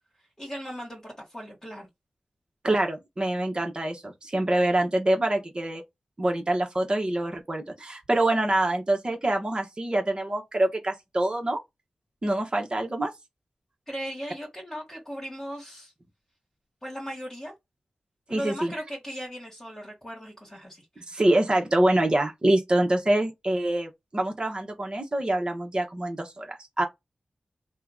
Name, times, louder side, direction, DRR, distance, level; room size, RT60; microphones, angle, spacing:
voice 1, 0.4-1.9 13.9-15.9 16.8-17.5 18.3-20.8, equal, 20° left, 1.5 m, -37 dB
voice 2, 2.6-5.8 6.2-11.6 12.2-13.1 18.3-18.7 21.0-26.9, right 1 dB, 35° right, 1.1 m, -25 dB
2.8 x 2.3 x 3.7 m
wide cardioid pair, 75°, 3 cm